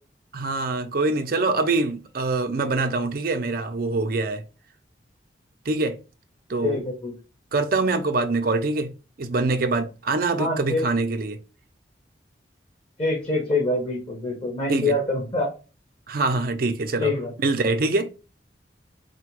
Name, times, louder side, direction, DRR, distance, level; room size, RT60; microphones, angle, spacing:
voice 1, 0.3-4.4 5.7-6.0 6.5-6.8 7.5-8.9 9.2-11.4 14.7-15.0 16.1-17.1 17.4-18.1, right 3 dB, 50° right, 0.5 m, -24 dB
voice 2, 6.6-7.1 10.4-10.9 13.0-15.5 17.0-17.3, left 2 dB, 30° left, 1.1 m, -25 dB
4.2 x 2.2 x 4.6 m
head